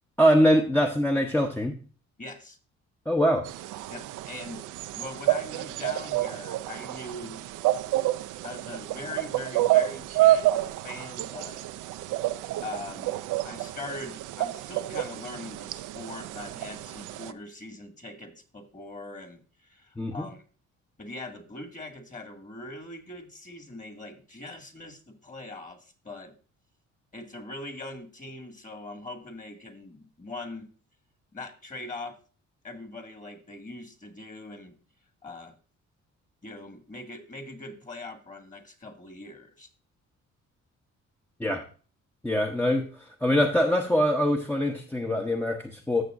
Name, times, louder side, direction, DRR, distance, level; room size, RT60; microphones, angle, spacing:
voice 1, 0.2-1.8 3.1-3.5 20.0-20.3 41.4-41.6 42.2-42.9 43.2-46.0, equal, 5° left, 2 dB, 0.8 m, -23 dB
voice 2, 2.2-2.6 3.9-4.7 4.9-7.4 8.4-11.6 12.6-20.4 21.0-26.3 27.1-30.7 31.3-32.2 32.6-34.8 35.2-35.6 36.4-39.7, left 2 dB, 25° left, 5 dB, 2.0 m, -41 dB
sound 1, 3.5-17.3, right 15 dB, 85° right, 0.5 m, -29 dB
14.5 x 6.8 x 2.5 m, 0.39 s
cardioid pair, 90°, 30 cm